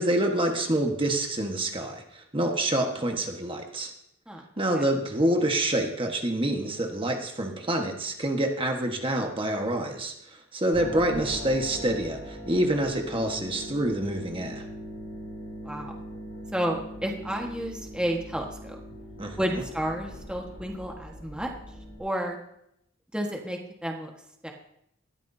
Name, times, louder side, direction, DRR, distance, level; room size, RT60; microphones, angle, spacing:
voice 1, 0.0-3.9 4.6-14.6 19.2-19.4, right 1 dB, 25° right, 3 dB, 1.4 m, -27 dB
sound 1, 10.7-22.0, equal, 85° left, 6.0 m, -41 dB
voice 2, 15.6-16.0 16.5-18.8 19.4-21.5 22.0-22.4 23.1-24.1 24.4-24.5, equal, 5° right, 1 dB, 1.5 m, -31 dB
20.0 x 14.0 x 2.8 m, 0.77 s
head